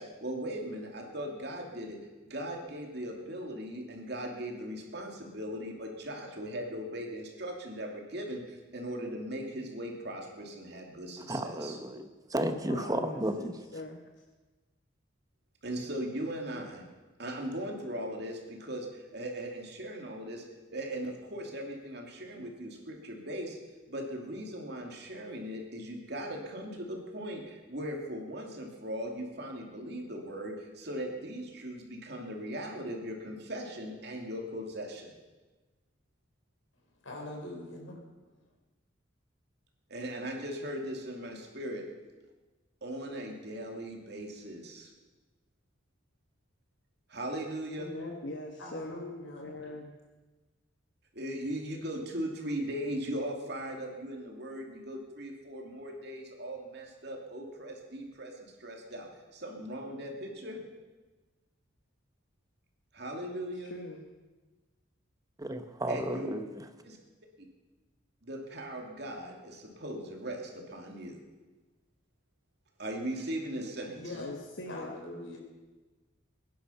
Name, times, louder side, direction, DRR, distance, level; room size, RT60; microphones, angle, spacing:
voice 1, 0.0-2.0 2.3-11.8 15.6-16.8 17.2-20.4 20.7-23.6 23.9-35.1 39.9-41.8 42.8-44.9 47.1-47.9 51.1-60.6 62.9-63.7 65.9-66.5 66.8-67.0 68.2-71.2 72.8-73.9, right 1 dB, 55° right, 1 dB, 2.6 m, -39 dB
voice 2, 11.3-13.5 65.4-66.6, right 1 dB, 20° right, 8 dB, 0.9 m, -33 dB
voice 3, 12.4-14.0 48.2-49.0 49.3-49.9 63.6-64.1 74.1-74.9, left 1 dB, 60° left, 3 dB, 1.3 m, -42 dB
voice 4, 37.0-38.0 47.8-48.2 48.6-49.5 73.9-74.4 74.7-75.4, left 2 dB, 90° left, 0 dB, 4.3 m, -42 dB
22.0 x 10.5 x 5.7 m, 1.2 s
head